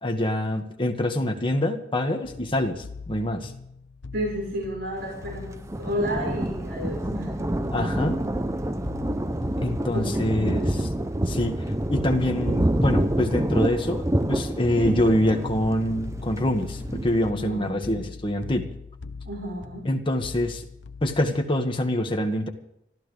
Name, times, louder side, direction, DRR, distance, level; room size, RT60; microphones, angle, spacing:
voice 1, 0.0-3.5 7.7-8.2 9.6-10.9 11.3-18.7 19.9-20.7 21.0-22.5, left 1 dB, 30° left, 3 dB, 1.8 m, -25 dB
sound 1, 2.2-21.3, left 4 dB, 80° left, 0.8 m, -42 dB
voice 2, 4.1-7.5 9.9-10.8 17.3-17.8 19.2-19.8, equal, 70° right, -1 dB, 5.3 m, -32 dB
Thunder, 5.0-17.3, right 1 dB, 15° right, 0.7 m, -28 dB
25.0 x 14.5 x 3.4 m, 0.80 s
head